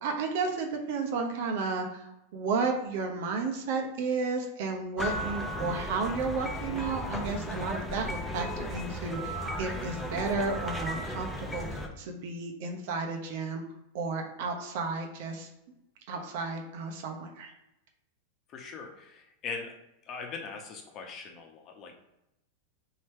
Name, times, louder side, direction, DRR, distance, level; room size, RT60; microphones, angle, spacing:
voice 1, 0.0-13.6 13.9-15.5 16.1-17.5, right 4 dB, 65° right, 3 dB, 0.8 m, -33 dB
sound 1, 5.0-11.9, equal, 10° left, 0.6 m, -35 dB
voice 2, 18.5-19.8 20.1-22.0, left 5 dB, 40° left, 2 dB, 0.9 m, -41 dB
3.2 x 2.9 x 4.4 m, 0.87 s
hypercardioid pair, 115°, 0 cm